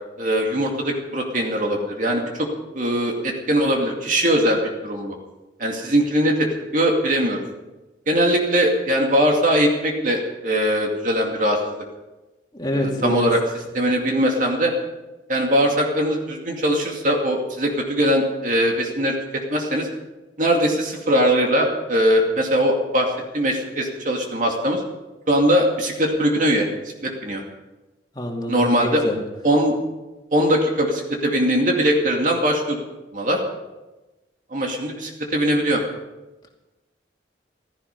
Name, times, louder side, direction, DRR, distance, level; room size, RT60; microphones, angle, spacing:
voice 1, 0.2-2.5 2.7-5.1 5.6-6.5 6.7-7.4 8.1-11.8 12.7-13.4 13.7-14.7 15.3-19.1 19.5-19.9 20.4-24.8 25.3-26.7 27.0-27.4 28.5-29.0 29.4-29.7 30.3-32.8 33.1-33.4 34.5-35.8, equal, 45° right, 1 dB, 2.4 m, -21 dB
voice 2, 12.5-13.3 28.1-29.2, equal, 20° left, 0 dB, 2.6 m, -25 dB
16.0 x 14.5 x 5.4 m, 1.1 s
head